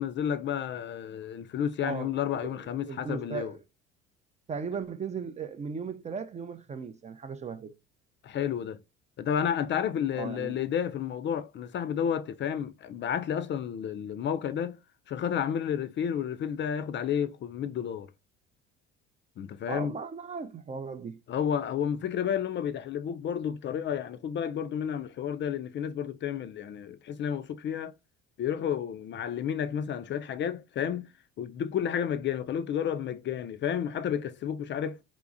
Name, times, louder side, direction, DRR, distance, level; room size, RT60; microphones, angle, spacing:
voice 1, 0.0-3.5 8.2-8.8 9.2-14.8 15.1-18.1 19.4-19.9 21.3-27.9 28.4-31.1 31.4-35.0, left 8 dB, 40° left, 0.4 m, -31 dB
voice 2, 1.8-2.6 2.8-3.6 4.5-7.7 10.1-10.6 19.7-21.2, right 5 dB, 25° right, 0.4 m, -37 dB
3.5 x 3.0 x 2.5 m
hypercardioid pair, 70°, 29 cm